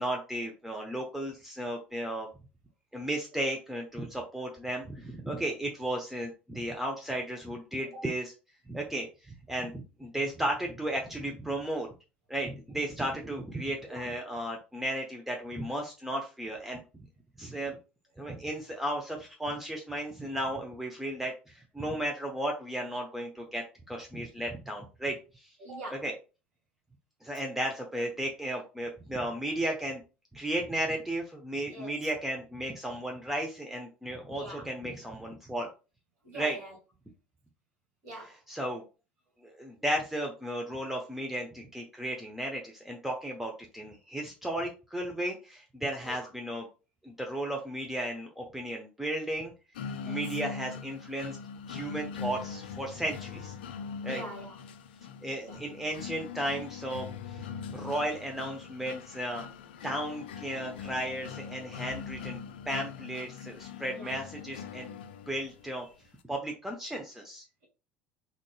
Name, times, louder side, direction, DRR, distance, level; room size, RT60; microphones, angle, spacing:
voice 1, 0.0-2.3 2.9-8.3 8.7-11.9 12.3-16.8 17.4-17.8 18.2-25.5 25.9-26.1 27.2-30.0 30.3-35.7 36.3-36.6 38.1-38.8 39.4-46.7 47.0-49.5 50.0-51.4 51.7-53.5 54.0-54.2 55.2-57.4 57.7-59.5 59.8-62.4 62.7-64.9 65.3-65.9 66.3-67.4, right 1 dB, 5° right, 0.8 m, -34 dB
voice 2, 25.6-26.0 31.7-31.9 34.3-34.7 36.2-36.7 38.0-38.4 46.0-46.3 50.0-50.2 54.0-54.6 55.4-55.6 63.9-64.2, right 1 dB, 55° right, 2.0 m, -43 dB
sound 1, 49.8-65.7, left 6 dB, 70° left, 0.4 m, -41 dB
3.8 x 3.8 x 2.3 m
figure-of-eight pair, 65°, 6 cm